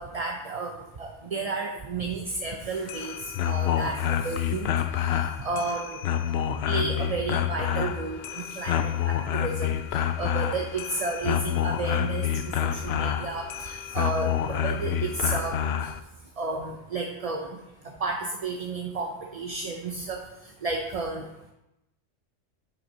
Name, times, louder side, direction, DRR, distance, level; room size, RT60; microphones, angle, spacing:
voice 1, 0.0-3.1 3.4-4.7 5.0-6.0 6.7-12.3 12.6-15.6 16.4-17.6 18.0-20.2 20.6-21.2, right 3 dB, 35° right, 1 dB, 0.7 m, -32 dB
sound 1, 2.7-16.0, left 9 dB, 65° left, 0.7 m, -28 dB
10.0 x 6.3 x 4.1 m, 0.91 s
omnidirectional pair, 1.3 m